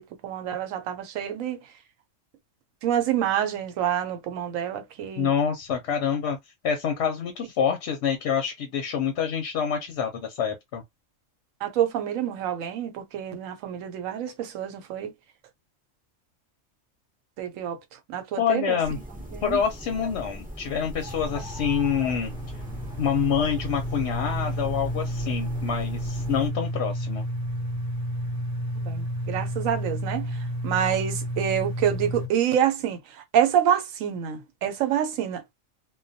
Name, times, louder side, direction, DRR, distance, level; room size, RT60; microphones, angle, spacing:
voice 1, 0.0-1.6 2.8-5.3 11.6-15.1 17.4-17.8 18.1-18.8 19.1-19.6 28.9-35.4, right 9 dB, 90° right, 1.0 m, -27 dB
voice 2, 5.2-6.4 6.6-10.8 18.4-19.0 19.4-22.3 23.0-27.3, left 7 dB, 65° left, 0.8 m, -26 dB
sound 1, 18.8-26.5, equal, 15° right, 0.3 m, -40 dB
sound 2, 21.0-32.3, equal, 45° right, 0.8 m, -31 dB
2.2 x 2.2 x 2.6 m
omnidirectional pair, 1.3 m